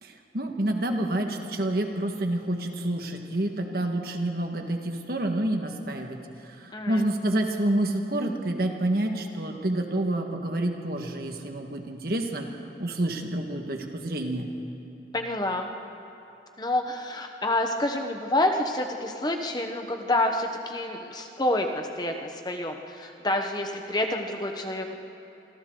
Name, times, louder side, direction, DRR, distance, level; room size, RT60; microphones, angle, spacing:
voice 1, 0.0-6.2 6.4-12.5 12.8-14.5, right 1 dB, 55° right, 3 dB, 1.7 m, -28 dB
voice 2, 6.7-7.0 15.1-15.7 16.6-25.0, left 1 dB, 20° left, 3 dB, 1.2 m, -28 dB
26.5 x 25.5 x 4.0 m, 2.8 s
head